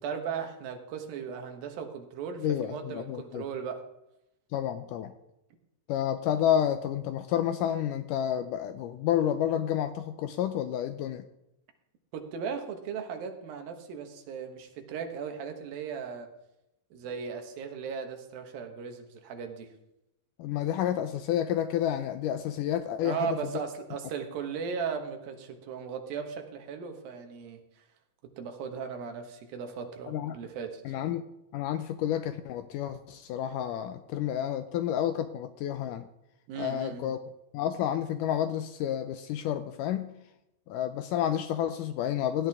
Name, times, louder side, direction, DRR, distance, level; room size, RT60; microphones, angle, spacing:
voice 1, 0.0-3.8 12.1-16.3 16.9-19.7 23.0-27.6 28.4-31.0 36.5-37.1, right 6 dB, 90° right, 5 dB, 3.2 m, -37 dB
voice 2, 2.4-3.4 4.5-5.1 5.9-11.2 20.4-23.6 30.1-30.4 30.9-31.2 31.5-36.1 36.6-37.2 37.5-40.1 40.7-42.5, left 10 dB, 80° left, 10 dB, 2.0 m, -30 dB
16.0 x 10.5 x 3.5 m, 0.86 s
omnidirectional pair, 4.0 m